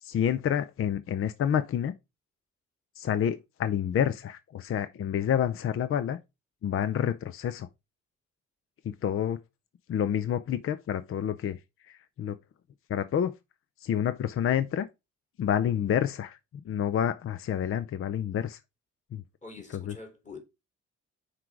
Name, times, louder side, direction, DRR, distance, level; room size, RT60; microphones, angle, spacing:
voice 1, 0.0-1.9 3.0-6.2 6.6-7.7 8.8-9.4 9.9-11.6 11.9-12.4 12.9-13.3 13.8-14.9 15.4-16.4 16.6-18.6 19.1-19.2 19.7-20.0, left 9 dB, 45° left, 0.5 m, -28 dB
voice 2, 19.4-20.4, left 3 dB, 25° left, 3.1 m, -45 dB
5.9 x 4.8 x 4.7 m
cardioid pair, 90°, 30 cm